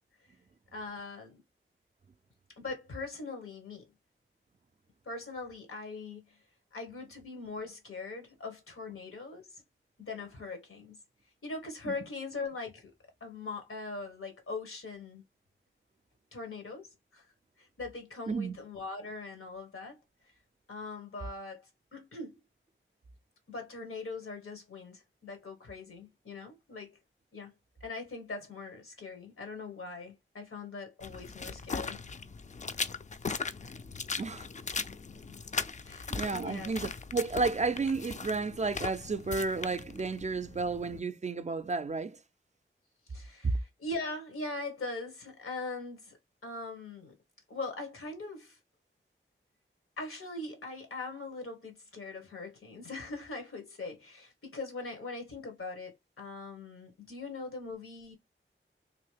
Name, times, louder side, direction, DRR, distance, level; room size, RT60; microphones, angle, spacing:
voice 1, 0.7-1.4 2.6-3.9 5.0-6.4 6.7-9.6 10.0-11.0 11.4-12.9 13.2-15.2 16.3-17.3 17.6-20.0 20.7-22.4 23.5-27.0 27.3-27.5 27.8-32.0 35.8-36.7 43.1-46.2 46.4-47.1 47.5-48.6 50.0-58.1, left 3 dB, 85° left, 1.3 m, -41 dB
voice 2, 18.3-18.6 34.2-34.5 36.1-42.2 43.4-43.5, right 4 dB, 35° right, 0.4 m, -32 dB
sound 1, 31.0-41.0, left 4 dB, 35° left, 0.4 m, -39 dB
3.0 x 2.7 x 3.3 m
wide cardioid pair, 55°, 21 cm